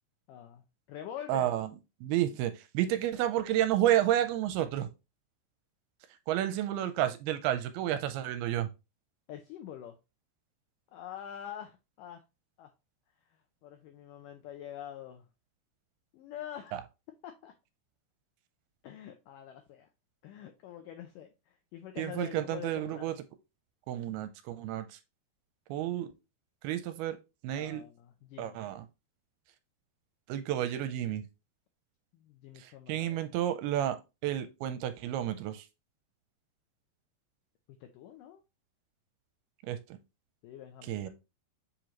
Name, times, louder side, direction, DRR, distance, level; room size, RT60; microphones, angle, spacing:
voice 1, 0.3-1.5 9.3-10.0 10.9-12.2 12.6-12.7 13.3-15.3 16.1-16.8 17.2-17.5 18.8-19.9 20.2-23.1 27.5-28.6 32.1-33.2 37.8-38.4 40.4-41.1, left 10 dB, 85° left, 1.9 m, -45 dB
voice 2, 1.3-1.7 2.0-4.9 6.3-8.7 16.7-16.8 22.0-23.1 23.9-25.0 25.7-26.1 26.6-27.2 27.4-27.8 28.4-28.9 30.3-31.2 32.6-34.0 34.2-35.7 39.7-40.0 40.9-41.1, right 12 dB, 85° right, 2.5 m, -31 dB
7.2 x 5.1 x 3.0 m
omnidirectional pair, 4.6 m